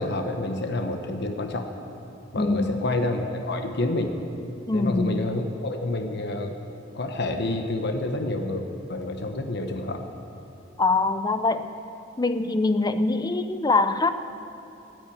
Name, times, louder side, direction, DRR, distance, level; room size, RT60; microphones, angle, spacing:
voice 1, 0.0-1.7 2.3-4.1 4.7-6.5 6.9-10.0, left 2 dB, 60° left, 5 dB, 1.1 m, -28 dB
voice 2, 2.4-2.9 4.7-5.3 10.8-11.7 12.2-14.1, left 3 dB, 20° left, 10 dB, 0.6 m, -23 dB
13.5 x 10.5 x 8.6 m, 2.8 s
head